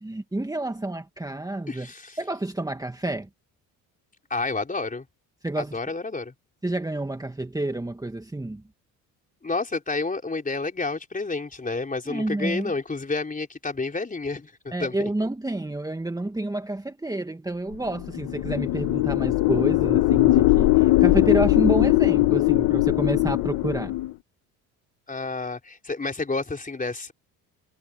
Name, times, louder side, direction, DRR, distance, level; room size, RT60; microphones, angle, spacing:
voice 1, 0.0-1.9 2.2-3.3 5.4-5.8 6.6-8.6 12.1-12.7 14.7-23.9, right 2 dB, 10° right, 2.0 m, -29 dB
voice 2, 1.7-2.2 4.3-5.1 5.6-6.3 9.4-15.1 25.1-27.1, left 3 dB, 20° left, 4.4 m, -30 dB
sound 1, 18.0-24.1, left 18 dB, 75° left, 1.1 m, -20 dB
supercardioid pair, 85°, 38 cm